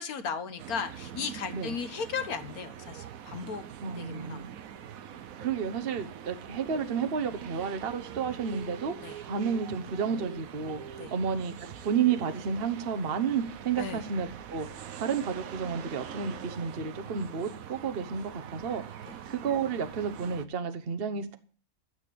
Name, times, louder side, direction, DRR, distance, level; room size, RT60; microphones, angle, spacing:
voice 1, 0.0-3.6 4.0-4.4 9.0-9.2 11.0-11.1 13.8-14.0 19.0-19.2, left 6 dB, 85° left, 1.7 m, -36 dB
sound 1, 0.6-20.5, right 9 dB, 75° right, 1.2 m, -44 dB
voice 2, 3.8-4.5 5.4-11.5 11.8-18.8 19.3-21.4, right 6 dB, 45° right, 1.2 m, -31 dB
13.0 x 8.3 x 6.8 m
omnidirectional pair, 1.5 m